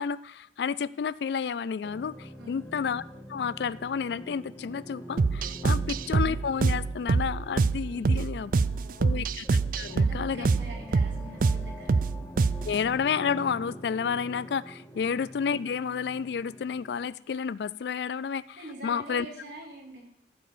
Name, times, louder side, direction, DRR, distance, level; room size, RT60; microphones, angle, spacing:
voice 1, 0.0-3.0 3.3-8.5 9.0-10.5 12.6-18.6 18.8-19.3, left 6 dB, 65° left, 19 dB, 0.3 m, -31 dB
sound 1, 1.8-17.1, equal, 10° left, 1.0 m, -45 dB
sound 2, 5.2-12.8, right 4 dB, 50° right, 0.4 m, -26 dB
voice 2, 5.6-5.9 7.9-9.2 9.8-12.1 12.5-12.7 14.9-15.1 18.6-20.1, right 1 dB, 80° right, -4 dB, 4.3 m, -45 dB
14.0 x 4.7 x 7.2 m, 0.74 s
head